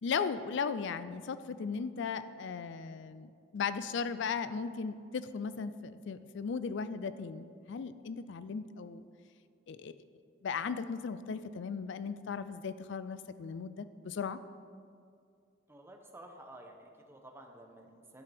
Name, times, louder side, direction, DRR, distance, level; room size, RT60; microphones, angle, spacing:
voice 1, 0.0-9.0 9.7-9.9 10.4-14.4, left 5 dB, 65° left, 13 dB, 0.4 m, -37 dB
voice 2, 15.7-18.2, right 1 dB, 15° right, 3 dB, 0.9 m, -52 dB
12.5 x 8.4 x 3.5 m, 2.3 s
head